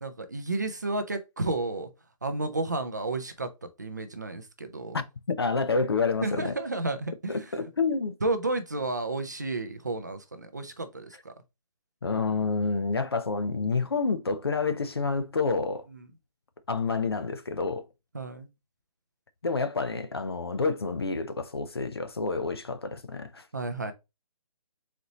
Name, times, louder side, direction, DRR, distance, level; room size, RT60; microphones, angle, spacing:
voice 1, 0.0-1.9 2.2-3.5 3.8-5.0 6.2-7.4 8.2-11.3 18.1-18.5 23.5-23.9, right 2 dB, 30° right, 0.4 m, -31 dB
voice 2, 4.9-6.6 7.3-8.2 12.0-15.9 16.7-17.9 19.4-23.5, left 4 dB, 40° left, 0.4 m, -28 dB
4.1 x 3.0 x 3.8 m
hypercardioid pair, 175°, 19 cm